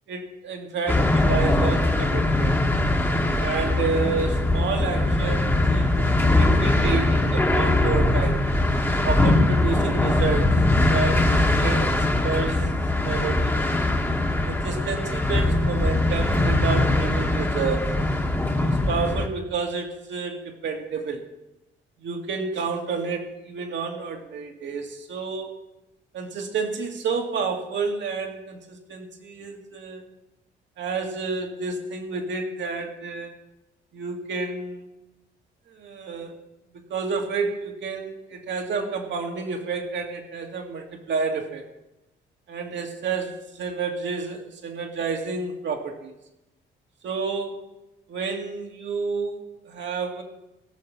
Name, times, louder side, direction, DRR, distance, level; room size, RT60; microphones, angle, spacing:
voice 1, 0.1-2.6 3.4-8.4 9.0-10.6 10.9-11.9 12.2-12.7 13.0-13.6 14.5-18.0 18.6-21.2 22.0-25.5 26.1-30.0 30.8-33.4 33.9-34.9 35.7-36.4 36.9-41.7 42.5-46.1 47.0-47.6 48.1-50.2, right 5 dB, 65° right, 2 dB, 2.2 m, -30 dB
sound 1, 0.9-19.3, left 2 dB, 10° left, 1.4 m, -21 dB
17.0 x 6.8 x 6.1 m, 0.93 s
cardioid pair, 90°, 20 cm